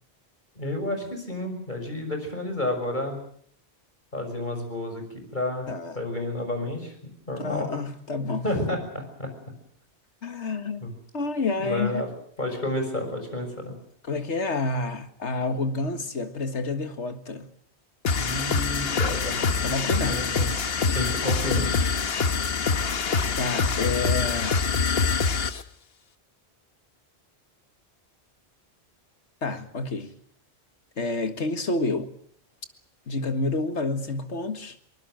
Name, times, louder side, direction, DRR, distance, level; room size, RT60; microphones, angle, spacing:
voice 1, 0.6-3.2 4.1-5.7 5.9-6.9 7.3-7.7 8.4-9.3 10.8-10.9 11.6-12.1 12.4-13.7 18.1-19.4 20.0-20.5 20.9-21.9, left 1 dB, 45° left, 6.3 m, -30 dB
voice 2, 7.4-8.4 10.2-10.9 11.1-12.0 14.1-17.5 19.6-20.3 23.4-24.6 29.4-30.1 31.0-32.1 33.1-34.8, left 3 dB, 85° left, 2.1 m, -29 dB
sound 1, 18.0-25.6, left 5 dB, 60° left, 1.4 m, -25 dB
23.5 x 20.0 x 7.7 m
omnidirectional pair, 1.2 m